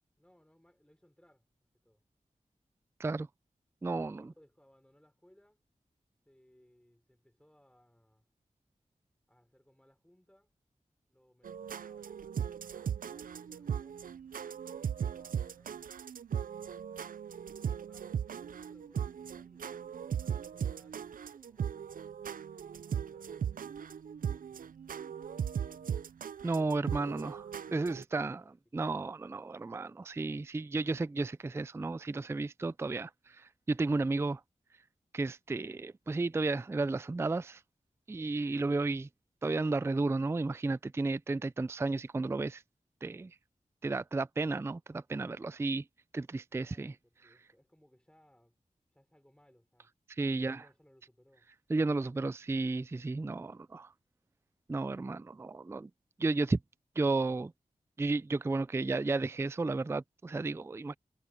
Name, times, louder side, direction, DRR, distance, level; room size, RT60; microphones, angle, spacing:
voice 1, 0.0-2.0 3.8-5.6 6.3-8.3 9.3-10.5 11.1-14.0 14.9-15.8 17.3-21.9 22.6-23.6 24.2-24.8 26.8-28.8 46.6-48.6 48.9-51.5, equal, 5° left, 4.3 m, -66 dB
voice 2, 3.8-4.3 26.4-27.4 27.7-28.4 28.7-33.1 33.4-34.4 35.1-37.6 38.1-39.1 39.4-42.6 43.0-43.3 43.8-45.8 46.1-46.9 50.2-50.6 51.7-53.9 54.7-55.9 56.2-56.6 57.0-57.5 58.0-61.0, right 3 dB, 20° right, 0.3 m, -33 dB
sound 1, 11.4-28.0, right 8 dB, 90° right, 0.4 m, -38 dB
wide cardioid pair, 95°, 14 cm